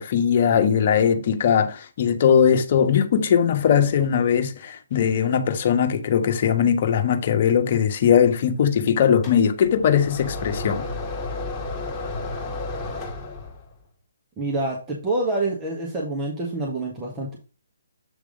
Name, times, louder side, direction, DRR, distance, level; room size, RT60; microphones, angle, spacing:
voice 1, 0.0-10.9, left 8 dB, 45° left, 1.3 m, -20 dB
sound 1, 9.2-13.7, left 2 dB, 10° left, 2.2 m, -32 dB
voice 2, 14.4-17.4, right 2 dB, 15° right, 1.5 m, -27 dB
8.2 x 3.4 x 5.2 m
hypercardioid pair, 150°, 0 cm